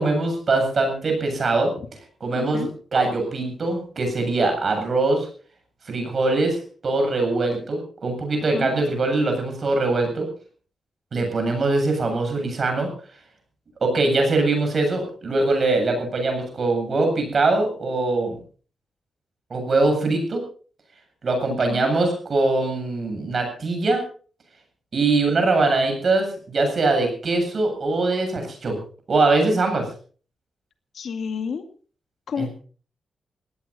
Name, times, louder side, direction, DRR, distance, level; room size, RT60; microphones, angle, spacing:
voice 1, 0.0-1.7 2.2-5.3 5.9-10.3 11.1-12.9 13.8-18.4 19.5-20.4 21.2-24.0 24.9-28.8 29.1-29.9 32.4-32.5, right 3 dB, 40° right, 4 dB, 7.9 m, -22 dB
voice 2, 2.3-2.7 8.5-8.7 21.7-21.9 30.9-31.7 32.3-32.5, left 6 dB, 60° left, 7 dB, 2.0 m, -30 dB
20.0 x 16.5 x 4.2 m, 0.42 s
wide cardioid pair, 165°, 0 cm